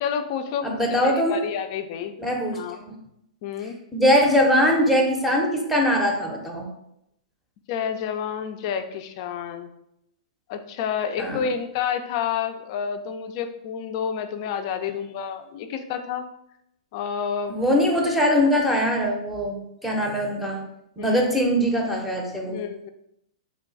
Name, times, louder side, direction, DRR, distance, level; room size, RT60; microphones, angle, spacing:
voice 1, 0.0-2.2 2.5-2.8 3.4-3.8 7.7-9.7 10.5-16.3 16.9-17.5 21.0-21.1 22.4-22.9, left 7 dB, 45° left, 8 dB, 0.4 m, -29 dB
voice 2, 0.6-1.4 2.2-2.6 2.9-3.0 3.9-6.7 11.2-11.5 17.5-20.6 21.0-22.6, equal, ahead, 0 dB, 0.7 m, -22 dB
3.2 x 2.2 x 3.9 m, 0.79 s
hypercardioid pair, 125°, 4 cm